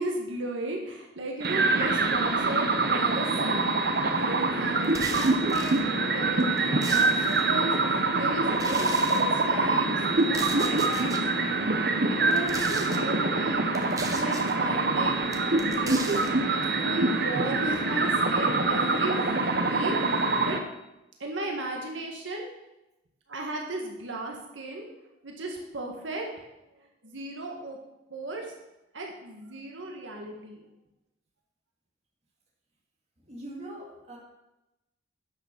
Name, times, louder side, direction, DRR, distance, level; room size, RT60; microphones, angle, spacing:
voice 1, 0.0-3.7 4.1-11.5 12.0-13.6 14.1-16.2 16.5-20.6 21.2-22.5 23.3-24.9 25.2-26.5 27.0-27.8 28.1-28.5 28.9-30.6, right 1 dB, 80° right, 1 dB, 1.7 m, -35 dB
sound 1, 1.4-20.6, right 3 dB, 55° right, 1.0 m, -25 dB
sound 2, 4.8-5.8 6.4-7.4 8.5-9.2 10.2-11.2 12.3-13.0 13.7-14.5 15.3-16.3, right 3 dB, 20° right, 1.0 m, -37 dB
voice 2, 33.2-34.2, right 1 dB, 35° right, -2 dB, 2.4 m, -41 dB
10.5 x 6.8 x 6.9 m, 0.95 s
head